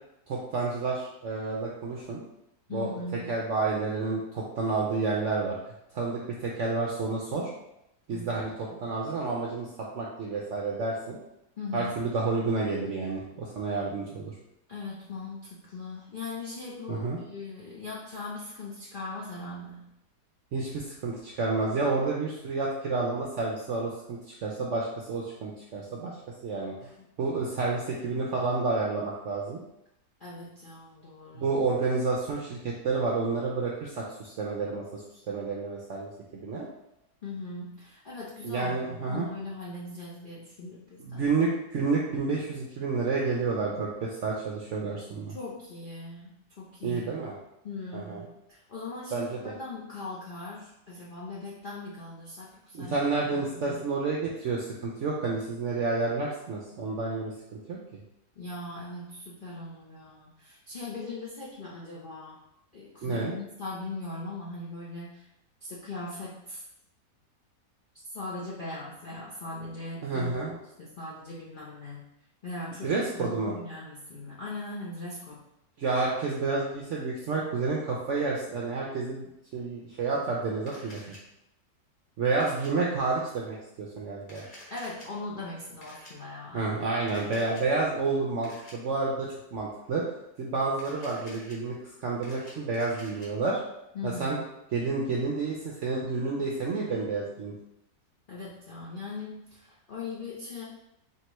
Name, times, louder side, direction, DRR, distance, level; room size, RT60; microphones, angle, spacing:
voice 1, 0.3-2.2 2.7-2.9 3.3-5.6 5.9-7.5 8.1-8.5 8.8-11.2 11.7-14.3 16.9-17.2 20.5-26.1 26.4-26.9 27.2-29.6 31.3-35.0 35.3-36.1 36.4-36.7 38.4-39.3 41.0-45.3 46.8-47.3 47.9-48.2 49.1-49.5 52.7-57.8 63.0-63.3 70.0-70.6 72.8-73.5 75.8-81.2 82.2-84.4 86.5-90.0 90.4-91.7 92.0-93.6 94.0-94.4 94.7-97.6, right 3 dB, 70° right, -3 dB, 0.7 m, -30 dB
voice 2, 2.7-3.3 8.1-8.3 11.6-11.9 14.7-19.8 27.0-27.1 30.2-31.5 37.2-41.3 45.3-47.1 47.6-53.0 53.3-53.8 58.4-62.4 62.7-65.3 65.6-66.6 68.1-70.3 70.8-72.1 72.4-75.4 84.7-86.7 93.9-94.4 98.3-100.6, left 3 dB, 60° left, -6 dB, 0.5 m, -40 dB
Camera, 80.7-81.2 82.4-82.7 84.2-85.1 85.8-86.1 87.1-87.6 88.4-88.7 90.7-91.5 92.0-93.3, left 1 dB, 35° left, 1.0 m, -49 dB
4.5 x 2.9 x 3.0 m, 0.83 s
omnidirectional pair, 1.8 m